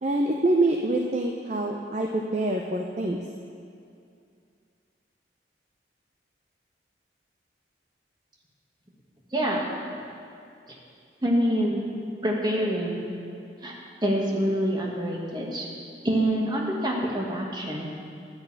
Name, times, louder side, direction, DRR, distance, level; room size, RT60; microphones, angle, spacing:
voice 1, 0.0-3.2, right 2 dB, 40° right, 1 dB, 0.6 m, -25 dB
voice 2, 9.3-9.7 11.2-11.9 12.2-13.1 13.6-13.7 14.0-15.7 16.0-17.9, equal, 25° right, -2 dB, 1.5 m, -26 dB
11.0 x 6.5 x 8.7 m, 2.5 s
head